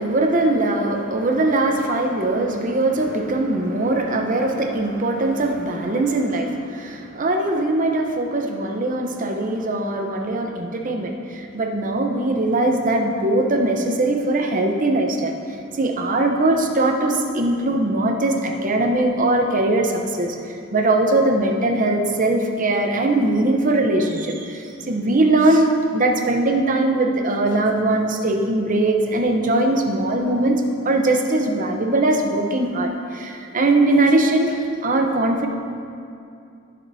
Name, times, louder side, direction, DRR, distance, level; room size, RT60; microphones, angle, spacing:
voice 1, 0.0-15.3 15.8-20.4 20.7-35.5, right 2 dB, 40° right, 3 dB, 0.8 m, -21 dB
15.0 x 7.4 x 2.7 m, 2.5 s
head